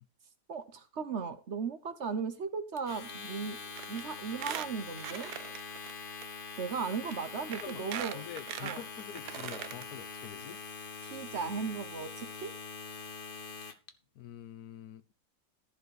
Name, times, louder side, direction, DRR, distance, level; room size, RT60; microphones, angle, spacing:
voice 1, 0.5-3.6 3.9-5.3 6.6-8.2 8.6-8.8 11.0-12.5, right 5 dB, 50° right, 1.2 m, -37 dB
Domestic sounds home sounds, 2.8-13.9, left 5 dB, 40° left, 1.1 m, -44 dB
Squeak, 3.8-4.0 4.3-5.9 6.2-6.3 7.1-7.2 7.5-9.8 10.2-10.3 10.5-10.6, right 11 dB, 80° right, 1.3 m, -40 dB
voice 2, 8.1-10.6 14.1-15.2, left 10 dB, 75° left, 1.2 m, -46 dB
14.5 x 4.9 x 6.5 m
omnidirectional pair, 1.7 m